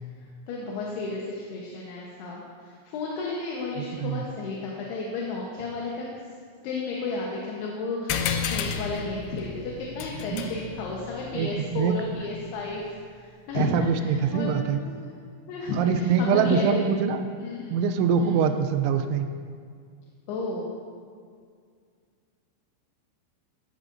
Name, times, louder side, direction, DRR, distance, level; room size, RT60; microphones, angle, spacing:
voice 1, 0.5-6.1 6.6-15.0 15.5-16.8 17.4-17.8 18.2-18.5 20.3-20.7, left 3 dB, 70° left, -3 dB, 2.8 m, -33 dB
sound 1, 8.1-13.0, left 7 dB, 90° left, 2.2 m, -33 dB
voice 2, 11.3-12.0 13.6-14.8 15.8-17.2 17.7-19.3, right 6 dB, 85° right, 8 dB, 3.0 m, -24 dB
14.5 x 11.5 x 2.6 m, 2.1 s
omnidirectional pair, 5.3 m